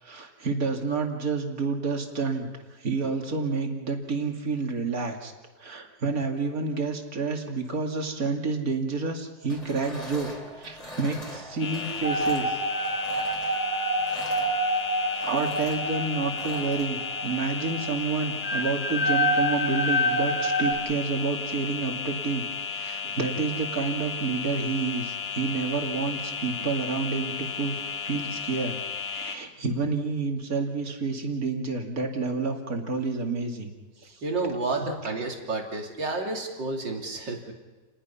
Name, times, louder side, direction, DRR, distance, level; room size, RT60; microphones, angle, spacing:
voice 1, 0.0-2.5 2.7-5.3 5.6-12.6 15.2-33.7 34.0-34.2 34.8-34.9, right 4 dB, 50° right, 2 dB, 2.8 m, -29 dB
sound 1, 9.4-16.9, equal, 20° left, 3.5 m, -43 dB
sound 2, 11.6-29.4, left 6 dB, 60° left, 1.8 m, -34 dB
sound 3, 12.0-20.7, equal, 40° left, 2.9 m, -28 dB
voice 2, 34.2-37.5, right 3 dB, 85° right, 1 dB, 3.6 m, -30 dB
30.0 x 20.5 x 5.7 m, 1.3 s
omnidirectional pair, 1.9 m